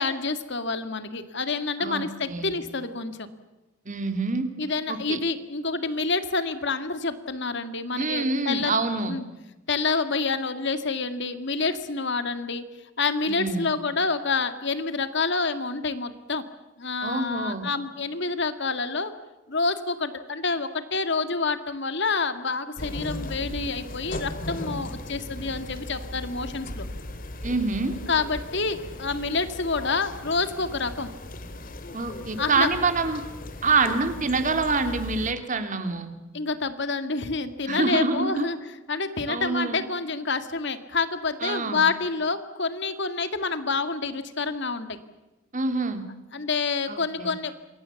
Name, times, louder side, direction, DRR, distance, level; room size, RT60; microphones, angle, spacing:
voice 1, 0.0-3.3 4.6-8.7 9.1-9.2 9.7-12.6 13.0-16.4 16.8-19.1 19.5-26.9 28.1-31.1 32.4-32.7 36.3-38.6 38.9-45.0 46.3-47.5, left 4 dB, 55° left, 10 dB, 2.1 m, -28 dB
voice 2, 1.8-2.5 3.8-4.5 4.9-5.2 8.0-9.2 13.3-13.7 17.0-17.7 27.4-27.9 31.9-33.2 33.6-36.1 37.7-38.5 39.3-39.8 41.4-41.8 45.5-46.0 46.9-47.3, right 3 dB, 40° right, 8 dB, 2.7 m, -26 dB
sound 1, 22.8-35.3, left 1 dB, 40° left, 2.2 m, -37 dB
27.5 x 22.5 x 7.1 m, 1.1 s
head